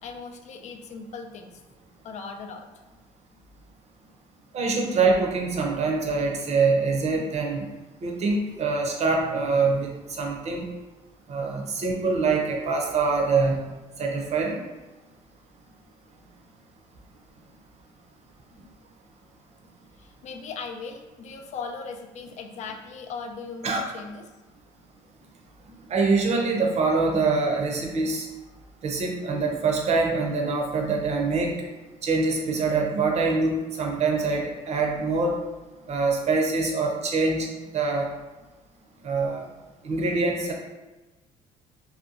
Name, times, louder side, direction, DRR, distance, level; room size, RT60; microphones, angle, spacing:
voice 1, 0.0-1.6 2.0-2.7 9.0-9.6 20.0-24.3, left 5 dB, 55° left, 4 dB, 0.4 m, -39 dB
voice 2, 4.5-7.6 8.0-9.9 10.2-10.6 11.3-13.7 14.0-14.6 23.6-23.9 25.9-28.3 28.8-31.5 32.0-35.4 35.9-37.5 37.7-38.1 39.0-39.5 39.8-40.5, right 4 dB, 50° right, 1 dB, 0.6 m, -24 dB
2.8 x 2.2 x 2.5 m, 1.1 s
supercardioid pair, 80°, 15 cm